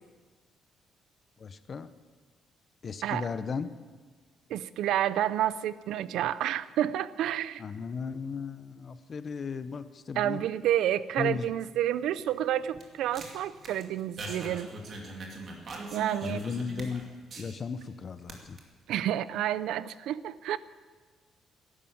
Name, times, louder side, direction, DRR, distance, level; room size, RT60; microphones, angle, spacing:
voice 1, 1.4-1.9 2.8-3.7 7.6-10.4 11.2-11.5 16.2-17.0 17.4-18.6, left 5 dB, 35° left, 13 dB, 0.7 m, -36 dB
voice 2, 4.5-7.6 10.2-14.7 15.9-16.4 18.9-20.6, right 11 dB, 80° right, 16 dB, 0.5 m, -29 dB
sound 1, 12.0-17.9 18.2-18.6, right 2 dB, 40° right, 2.4 m, -42 dB
14.0 x 11.5 x 8.7 m, 1.4 s
cardioid pair, 150°, 0 cm